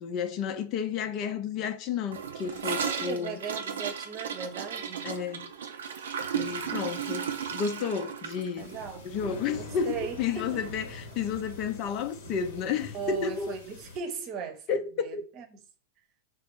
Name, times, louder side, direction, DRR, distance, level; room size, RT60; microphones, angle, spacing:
voice 1, 0.0-3.4 5.0-5.5 6.3-8.8 9.0-13.5 14.7-14.8 15.1-15.2, left 6 dB, 40° left, 0.5 m, -31 dB
Gurgling / Toilet flush, 2.1-10.4 10.6-10.8 11.1-11.5 11.8-11.9 12.2-12.3 13.2-13.3, right 7 dB, 65° right, 0.5 m, -35 dB
voice 2, 2.6-5.1 8.6-9.1 9.6-10.6 12.9-15.6, right 6 dB, 35° right, 0.9 m, -38 dB
sound 1, 8.6-14.0, left 2 dB, 55° left, 0.9 m, -44 dB
4.2 x 2.0 x 4.5 m
figure-of-eight pair, 90°, 0 cm